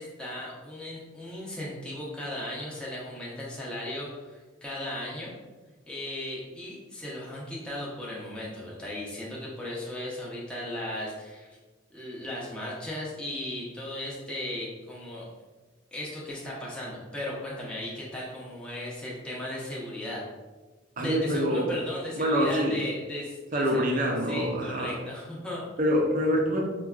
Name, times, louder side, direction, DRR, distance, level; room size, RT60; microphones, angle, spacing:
voice 1, 0.0-5.3 5.9-11.5 11.9-15.3 15.9-20.2 21.0-25.7, left 1 dB, 5° left, -6 dB, 0.6 m, -36 dB
voice 2, 21.0-21.8 22.1-22.8 23.5-25.0 25.8-26.6, equal, 45° right, 1 dB, 0.4 m, -25 dB
4.5 x 2.2 x 2.3 m, 1.3 s
head